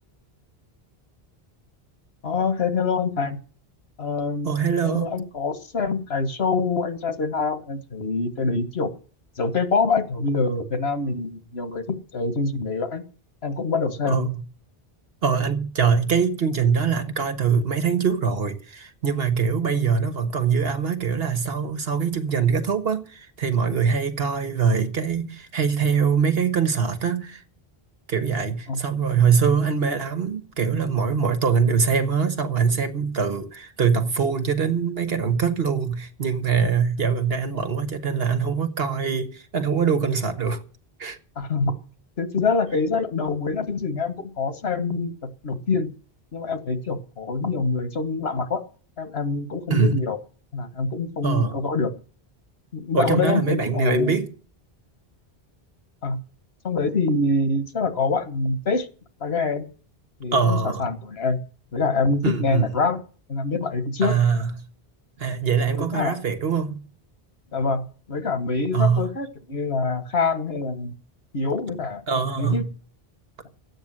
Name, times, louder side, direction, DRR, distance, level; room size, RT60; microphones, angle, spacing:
voice 1, 2.2-3.4 4.0-4.5 4.8-8.9 9.4-13.0 13.4-14.3 28.7-28.8 41.4-41.7 42.2-45.9 46.3-48.6 49.0-50.2 50.5-51.9 52.7-54.2 56.0-56.2 56.6-58.9 59.2-59.6 60.2-61.4 61.7-63.0 63.3-64.1 65.7-66.2 67.5-70.9 71.3-72.0 72.4-72.7, left 4 dB, 85° left, 1.8 m, -25 dB
voice 2, 4.4-5.1 14.1-14.4 15.2-27.4 28.1-40.6 41.0-41.2 49.7-50.0 51.2-51.6 52.9-54.3 60.3-60.8 62.2-62.7 64.0-64.5 65.2-66.8 68.7-69.1 72.1-72.7, right 6 dB, 75° right, 1.6 m, -23 dB
13.5 x 8.9 x 7.6 m
omnidirectional pair, 1.0 m